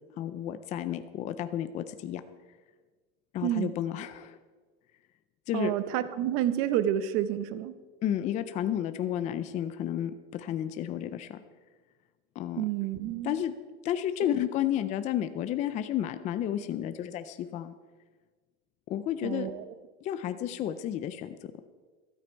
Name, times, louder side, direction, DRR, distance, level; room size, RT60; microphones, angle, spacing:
voice 1, 0.2-2.2 3.3-4.4 5.5-5.7 8.0-11.4 12.4-12.6 13.2-13.5 13.8-17.8 18.9-19.5 20.0-21.5, left 11 dB, 25° left, 11 dB, 0.4 m, -32 dB
voice 2, 5.5-7.7 12.6-13.4 14.2-14.3 19.2-19.7, right 11 dB, 50° right, 13 dB, 0.8 m, -29 dB
14.0 x 13.0 x 4.5 m, 1.4 s
cardioid pair, 175°, 30 cm